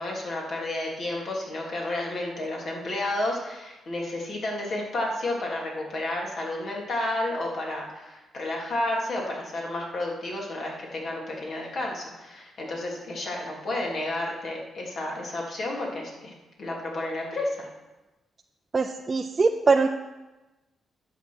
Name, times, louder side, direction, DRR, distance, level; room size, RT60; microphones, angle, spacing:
voice 1, 0.0-16.3 16.6-17.7, left 1 dB, 60° left, -2 dB, 3.2 m, -31 dB
voice 2, 18.7-19.9, right 4 dB, 35° right, 3 dB, 0.6 m, -22 dB
10.5 x 7.2 x 6.3 m, 1.1 s
cardioid pair, 80°, 0 cm